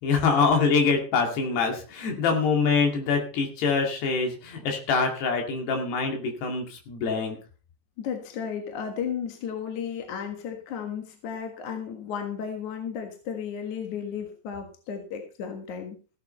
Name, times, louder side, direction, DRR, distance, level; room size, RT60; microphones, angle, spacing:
voice 1, 0.0-7.4, left 5 dB, 90° left, 3 dB, 4.4 m, -25 dB
voice 2, 8.0-16.0, left 7 dB, 55° left, 4 dB, 2.7 m, -34 dB
16.0 x 8.6 x 4.3 m, 0.36 s
omnidirectional pair, 4.5 m